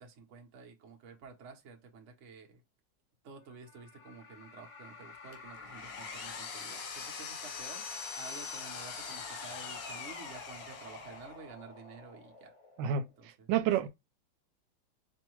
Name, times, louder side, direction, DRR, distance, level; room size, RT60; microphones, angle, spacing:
voice 1, 0.0-2.6 3.2-12.5 13.2-13.5, right 4 dB, 50° right, 1.0 m, -51 dB
sound 1, 3.5-13.2, left 2 dB, 35° left, 0.5 m, -50 dB
Power tool, 5.3-11.4, left 6 dB, 90° left, 1.6 m, -43 dB
voice 2, 12.8-13.9, right 9 dB, 90° right, 1.3 m, -30 dB
4.6 x 2.7 x 3.0 m
omnidirectional pair, 1.9 m